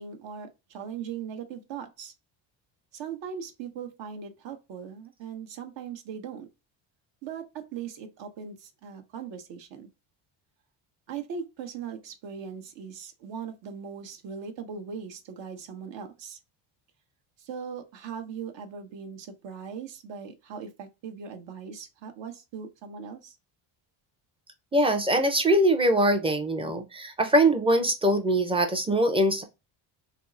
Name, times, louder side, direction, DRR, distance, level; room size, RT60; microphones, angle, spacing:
voice 1, 0.0-2.1 2.9-6.5 7.2-9.9 11.1-16.4 17.4-23.4, right 7 dB, 65° right, 0.9 m, -39 dB
voice 2, 24.7-29.4, right 1 dB, 10° right, 0.5 m, -22 dB
3.5 x 2.0 x 2.5 m
cardioid pair, 105°, 48 cm